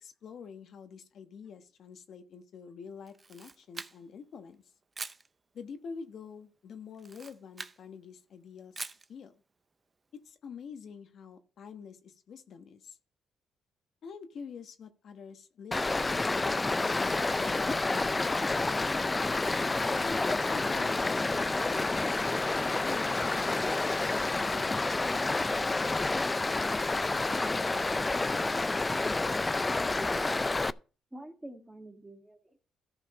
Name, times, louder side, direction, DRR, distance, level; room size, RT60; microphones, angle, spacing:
voice 1, 0.0-4.6 5.5-8.8 9.1-9.3 10.2-13.0 14.0-19.2 20.0-22.2 22.8-25.0, left 6 dB, 60° left, 7 dB, 1.1 m, -47 dB
Camera, 3.1-4.2 4.9-5.3 6.9-7.8 8.8-9.1, right 4 dB, 30° right, 0.7 m, -43 dB
Stream, 15.7-30.7, left 3 dB, 20° left, 0.4 m, -29 dB
voice 2, 27.2-27.6 30.1-30.4 31.1-32.6, right 1 dB, 10° right, 4 dB, 1.9 m, -46 dB
13.5 x 5.1 x 5.1 m, 0.36 s
cardioid pair, 90°, 0 cm